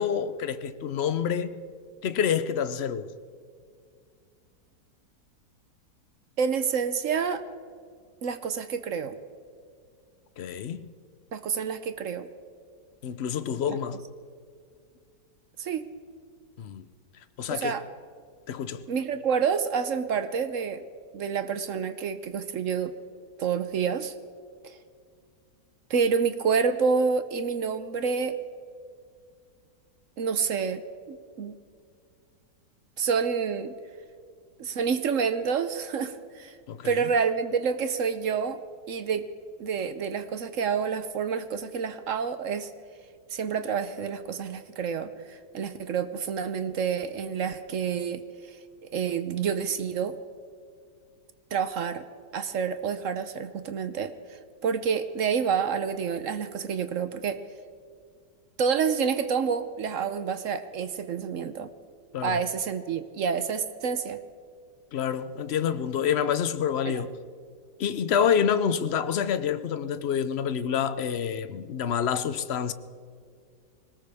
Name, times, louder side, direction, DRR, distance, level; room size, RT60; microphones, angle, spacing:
voice 1, 0.0-1.6 2.0-3.1 10.4-10.9 13.0-14.1 16.6-16.8 17.4-17.8 18.5-18.9 36.7-37.1 62.1-62.4 64.9-67.1 67.8-72.7, left 8 dB, 60° left, 0.7 m, -27 dB
voice 2, 6.4-7.4 8.2-9.2 11.3-12.3 13.7-13.8 15.6-15.9 17.5-17.8 18.9-20.8 21.1-22.9 23.4-24.1 24.6-24.8 25.9-28.3 30.2-30.8 31.1-31.5 33.0-33.7 34.6-36.6 36.8-38.6 38.9-39.2 39.6-42.7 43.3-48.2 48.5-48.6 48.9-50.1 51.5-52.0 52.3-54.1 54.6-57.4 58.6-61.7 62.2-64.2 66.8-67.0, right 6 dB, 60° right, 0.9 m, -28 dB
21.5 x 19.0 x 3.5 m
omnidirectional pair, 1.8 m